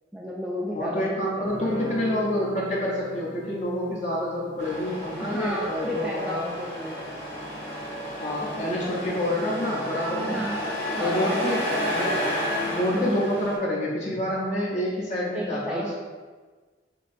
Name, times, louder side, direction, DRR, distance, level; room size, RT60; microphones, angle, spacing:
voice 1, 0.1-1.1 5.2-7.0 8.6-9.0 10.2-11.4 15.3-15.9, left 1 dB, 5° right, -5 dB, 0.3 m, -33 dB
voice 2, 0.7-6.4 8.2-10.4 11.0-11.6 11.9-12.3 12.7-15.9, left 1 dB, 40° left, -5 dB, 0.6 m, -28 dB
Guitar, 1.5-8.6, left 1 dB, 80° right, 0.7 m, -39 dB
Truck, 4.6-13.6, left 1 dB, 75° left, 1.5 m, -31 dB
6.4 x 2.6 x 2.6 m, 1.4 s
head